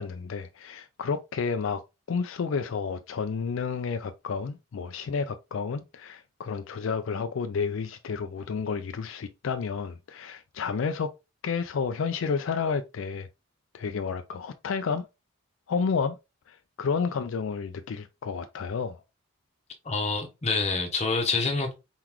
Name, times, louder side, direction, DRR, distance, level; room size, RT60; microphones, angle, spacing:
voice 1, 0.0-1.8 2.1-11.1 11.4-13.3 13.7-15.1 15.7-16.2 16.5-19.0, left 5 dB, 70° left, 0.4 m, -31 dB
voice 2, 19.8-21.8, left 4 dB, 30° left, 1.0 m, -27 dB
4.5 x 3.8 x 3.0 m
head